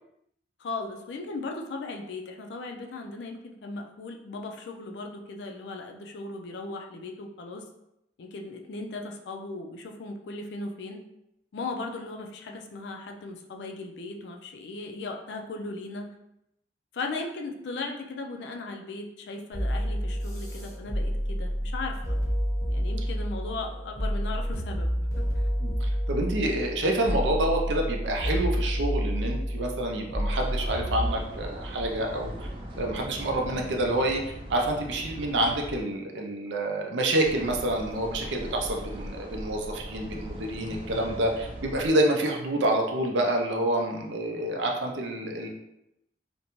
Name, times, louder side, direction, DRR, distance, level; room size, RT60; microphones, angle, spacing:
voice 1, 0.6-7.6 8.2-11.0 11.5-16.1 16.9-22.2 22.7-25.3, left 3 dB, 70° left, 3 dB, 0.4 m, -37 dB
sound 1, 19.5-31.1, equal, 20° left, 0.7 m, -29 dB
voice 2, 25.6-32.5 32.8-34.2 34.5-45.5, right 1 dB, 85° right, 2 dB, 0.5 m, -28 dB
sound 2, 30.4-35.8 37.2-41.9, equal, 30° right, 0.4 m, -39 dB
2.5 x 2.1 x 3.0 m, 0.83 s
head